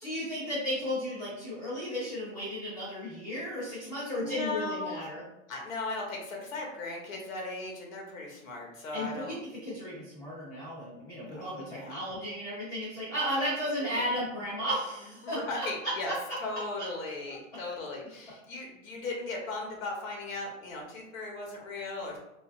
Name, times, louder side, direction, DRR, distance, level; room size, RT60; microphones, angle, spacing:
voice 1, 0.0-5.2 8.9-15.7 16.1-16.2, equal, 10° left, -10 dB, 0.4 m, -34 dB
voice 2, 4.1-5.0 5.5-9.3 11.3-12.0 13.9-14.1 15.2-16.1 16.4-22.2, left 2 dB, 85° left, 0 dB, 1.0 m, -37 dB
3.2 x 2.4 x 2.4 m, 0.91 s
supercardioid pair, 170°, 39 cm